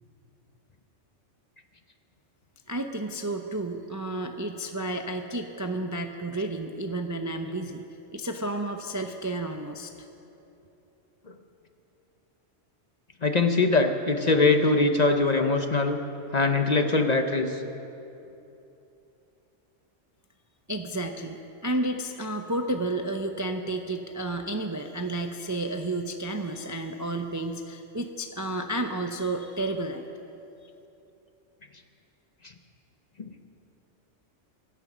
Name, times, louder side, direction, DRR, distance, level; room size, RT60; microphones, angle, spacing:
voice 1, 2.7-7.9 8.1-9.9 20.7-30.0, right 2 dB, 20° right, 5 dB, 0.5 m, -31 dB
voice 2, 13.2-16.0 16.3-17.6 33.2-33.3, left 3 dB, 40° left, 6 dB, 0.8 m, -22 dB
24.0 x 9.4 x 6.1 m, 2.9 s
omnidirectional pair, 1.3 m